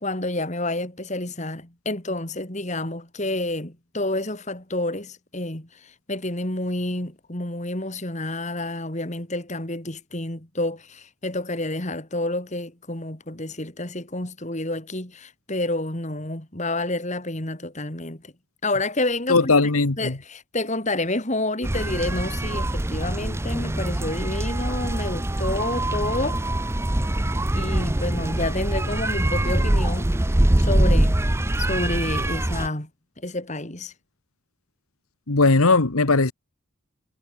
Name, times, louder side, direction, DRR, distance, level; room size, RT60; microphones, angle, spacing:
voice 1, 0.0-18.3 18.6-19.5 20.0-26.4 27.5-30.1 30.6-31.2 31.6-32.9 33.2-33.9, left 2 dB, 35° left, 2.9 m, -29 dB
voice 2, 19.3-20.2 35.3-36.3, left 3 dB, 80° left, 1.5 m, -18 dB
sound 1, 21.6-32.7, right 1 dB, 10° right, 0.6 m, -23 dB
head